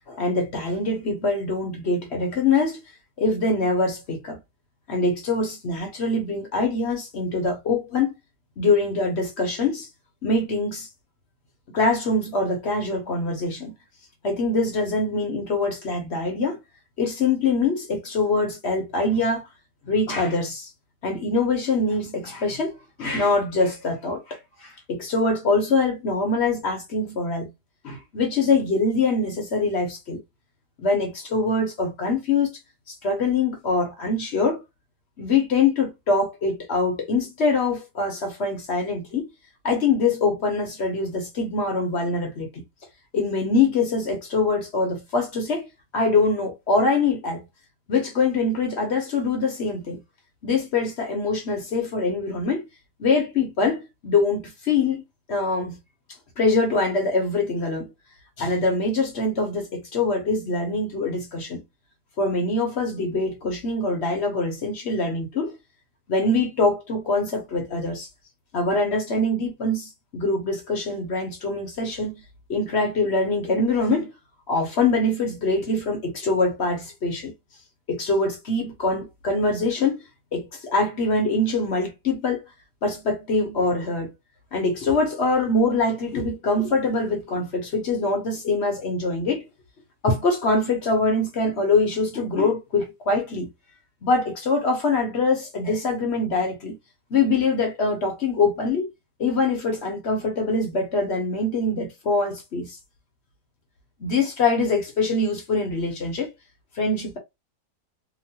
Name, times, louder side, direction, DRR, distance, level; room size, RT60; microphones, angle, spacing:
voice 1, 0.1-2.8 3.2-4.4 4.9-8.1 8.6-9.9 10.2-10.9 11.7-13.7 14.2-16.6 17.0-19.5 19.9-20.7 21.0-27.5 27.8-30.2 30.8-32.5 32.9-34.6 35.2-39.3 39.6-42.6 43.1-45.7 45.9-47.4 47.9-50.0 50.4-52.6 53.0-55.0 55.3-55.8 56.4-57.9 58.4-61.6 62.2-65.5 66.1-68.1 68.5-72.2 72.5-74.1 74.5-77.3 77.9-80.0 80.3-82.4 82.8-84.1 84.5-89.4 90.0-93.5 94.0-96.8 97.1-98.9 99.2-102.8 104.0-106.3 106.8-107.2, left 3 dB, 50° left, 0.9 m, -24 dB
3.0 x 2.2 x 2.8 m
omnidirectional pair, 1.8 m